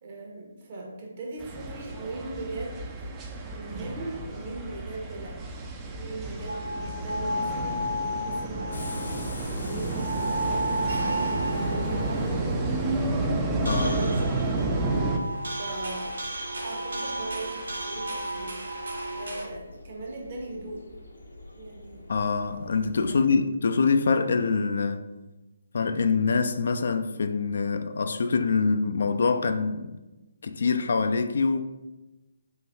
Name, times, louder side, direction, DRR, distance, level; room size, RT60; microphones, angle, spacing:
voice 1, 0.0-3.1 3.5-5.4 5.9-13.0 13.6-16.2 16.6-18.6 19.1-20.8 21.5-22.2 23.1-23.4, right 2 dB, 45° right, 1.0 m, -39 dB
sound 1, 1.4-15.2, right 2 dB, 15° right, 0.4 m, -31 dB
sound 2, 6.5-19.4, right 1 dB, 75° right, 0.9 m, -33 dB
sound 3, 8.7-23.2, left 1 dB, 75° left, 0.7 m, -43 dB
voice 2, 13.6-14.0 22.1-25.1 25.7-30.0 30.4-31.7, left 4 dB, 60° left, 0.3 m, -25 dB
3.8 x 2.6 x 4.2 m
figure-of-eight pair, 145°, 0 cm